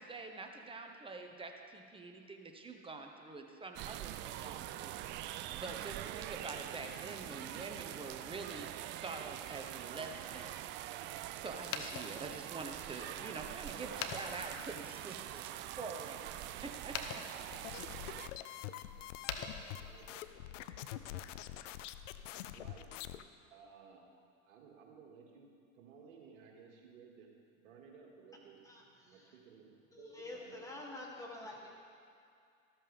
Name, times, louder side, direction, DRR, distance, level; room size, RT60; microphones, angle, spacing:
voice 1, 0.0-8.7 9.0-10.7 11.0-17.2, right 3 dB, 15° right, 3 dB, 1.3 m, -46 dB
sound 1, 3.8-18.3, right 13 dB, 30° right, 0.3 m, -44 dB
sound 2, 11.6-20.3, left 6 dB, 35° left, 1.0 m, -47 dB
sound 3, 17.5-23.2, left 12 dB, 65° left, 0.6 m, -46 dB
voice 2, 19.4-20.2 20.5-21.6 22.5-23.0 23.5-24.0 24.5-25.5 25.7-27.3 27.6-29.7 30.0-30.6, right 6 dB, 70° right, 0 dB, 2.3 m, -58 dB
voice 3, 29.9-31.7, left 2 dB, 10° left, -3 dB, 2.6 m, -47 dB
13.5 x 13.0 x 3.6 m, 2.4 s
hypercardioid pair, 90°, 40 cm